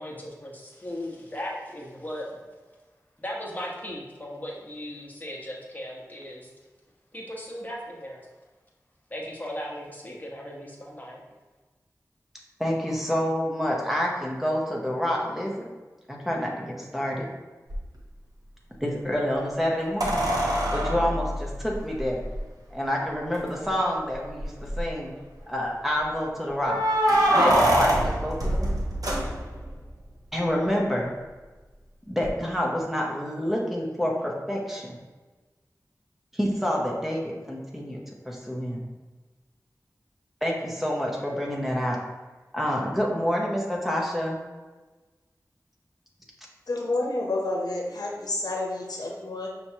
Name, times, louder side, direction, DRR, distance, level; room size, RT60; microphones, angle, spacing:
voice 1, 0.0-2.3 3.2-6.5 7.1-8.2 9.1-11.2, left 1 dB, 25° left, -3 dB, 1.0 m, -37 dB
voice 2, 12.6-15.7 16.1-17.3 18.8-20.2 20.7-22.2 22.7-25.1 25.5-26.8 27.3-28.7 30.3-31.1 32.1-34.9 36.3-38.0 38.3-38.8 40.4-42.0 42.5-44.4, equal, 5° right, -3 dB, 0.8 m, -28 dB
sound 1, 17.7-17.8 20.0-22.4 23.3-23.4 23.7-23.8 24.4-24.9 26.6-29.7 32.2-32.3, right 1 dB, 70° right, 0.8 m, -24 dB
voice 3, 46.7-49.5, left 2 dB, 80° left, -1 dB, 0.7 m, -29 dB
5.7 x 3.0 x 2.8 m, 1.3 s
wide cardioid pair, 70°, 6 cm